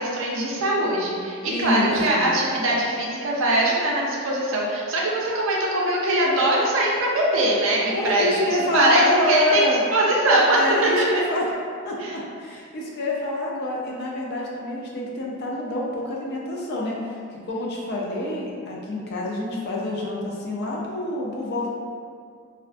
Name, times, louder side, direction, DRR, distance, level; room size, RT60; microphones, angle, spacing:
voice 1, 0.0-11.1 12.0-12.1, right 1 dB, 65° right, -3 dB, 0.5 m, -22 dB
voice 2, 1.5-2.3 7.9-9.8 10.5-11.5 11.8-21.7, left 1 dB, 50° left, -3 dB, 0.4 m, -27 dB
2.4 x 2.2 x 2.4 m, 2.2 s
head